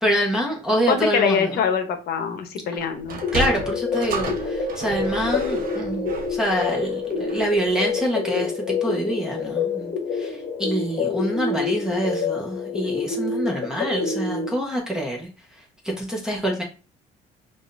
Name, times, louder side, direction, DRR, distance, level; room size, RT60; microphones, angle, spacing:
voice 1, 0.0-1.6 3.3-8.5 8.8-9.9 10.2-15.3 15.8-16.6, equal, 5° right, -1 dB, 1.0 m, -26 dB
voice 2, 0.9-3.2 14.3-14.5, left 6 dB, 70° left, 7 dB, 0.9 m, -24 dB
Sliding door, 3.0-7.6, right 2 dB, 55° right, 1.0 m, -33 dB
sound 1, 3.2-14.5, left 4 dB, 40° left, 1.2 m, -27 dB
4.9 x 2.6 x 2.5 m, 0.33 s
cardioid pair, 110°, 17 cm